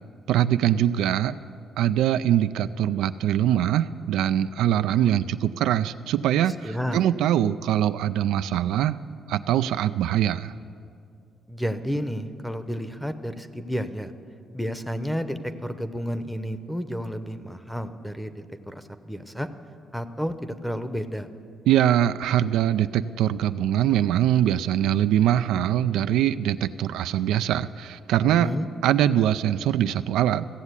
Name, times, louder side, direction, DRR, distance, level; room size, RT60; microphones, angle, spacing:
voice 1, 0.3-1.3 1.8-9.0 9.3-10.5 21.7-28.5 28.8-30.5, right 11 dB, 90° right, 11 dB, 0.3 m, -23 dB
voice 2, 6.5-7.0 11.5-14.1 14.5-19.5 19.9-21.3 28.2-28.7, equal, ahead, 11 dB, 0.7 m, -31 dB
15.5 x 7.2 x 8.2 m, 2.4 s
cardioid pair, 90°, 0 cm